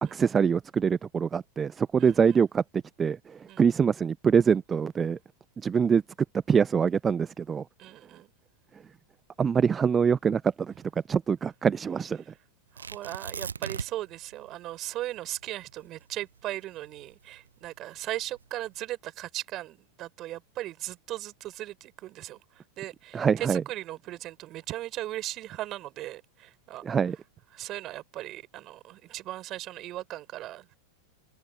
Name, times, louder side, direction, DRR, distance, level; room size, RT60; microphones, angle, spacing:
voice 1, 0.0-2.6 3.0-5.2 5.6-6.0 6.5-7.6 9.4-10.7 11.1-12.2 23.1-23.6 26.8-27.2, right 6 dB, 20° right, 0.9 m, -24 dB
voice 2, 2.0-2.4 3.5-3.6 7.8-8.3 12.7-26.8 27.5-30.8, right 15 dB, 35° right, 4.9 m, -38 dB
Tearing, 12.8-14.2 14.5-14.6 15.1-17.5 18.2-18.6, right 6 dB, 75° right, 1.2 m, -38 dB
open air
figure-of-eight pair, 90°, 0 cm